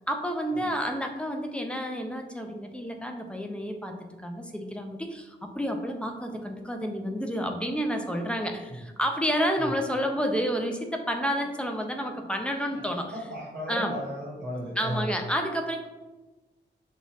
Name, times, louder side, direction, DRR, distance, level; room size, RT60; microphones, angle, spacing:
voice 1, 0.1-13.1 13.7-14.0 14.8-15.8, equal, 5° left, 3 dB, 0.4 m, -30 dB
voice 2, 13.1-15.1, equal, 70° right, -7 dB, 1.5 m, -35 dB
6.1 x 2.7 x 2.4 m, 1.1 s
wide cardioid pair, 125°, 19 cm